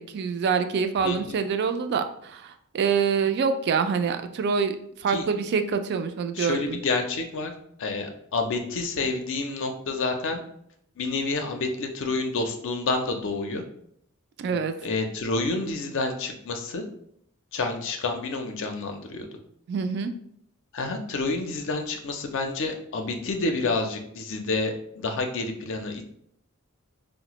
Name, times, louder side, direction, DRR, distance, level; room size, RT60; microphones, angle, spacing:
voice 1, 0.0-6.8 14.4-14.7 19.7-20.1, right 6 dB, 50° right, 8 dB, 0.3 m, -26 dB
voice 2, 1.0-1.4 5.1-5.2 6.4-7.5 7.8-10.4 11.0-13.6 14.5-16.9 17.5-19.3 20.7-26.2, left 3 dB, 60° left, 5 dB, 0.5 m, -29 dB
4.0 x 2.0 x 2.9 m, 0.69 s
head